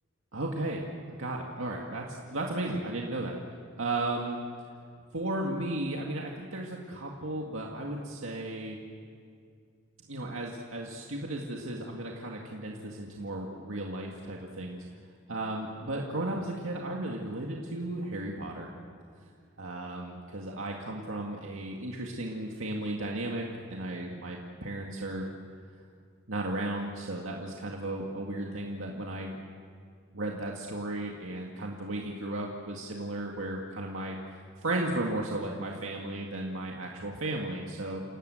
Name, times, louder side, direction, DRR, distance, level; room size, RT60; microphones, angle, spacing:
voice 1, 0.3-0.8 1.2-3.3 3.8-4.4 5.1-8.8 10.1-14.8 15.3-18.7 19.6-25.3 26.3-29.3 30.1-34.2 34.6-38.0, right 2 dB, 75° right, -1 dB, 2.1 m, -35 dB
29.0 x 18.0 x 8.0 m, 2.2 s
head